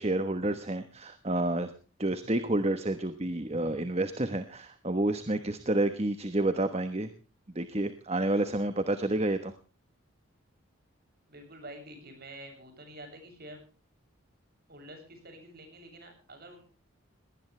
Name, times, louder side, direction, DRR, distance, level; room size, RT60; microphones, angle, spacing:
voice 1, 0.0-1.7 2.0-7.1 7.5-9.5, right 1 dB, 30° right, 10 dB, 1.2 m, -29 dB
voice 2, 11.3-13.6 14.7-16.6, right 1 dB, 45° right, 5 dB, 7.5 m, -48 dB
21.0 x 19.0 x 3.3 m, 0.36 s
head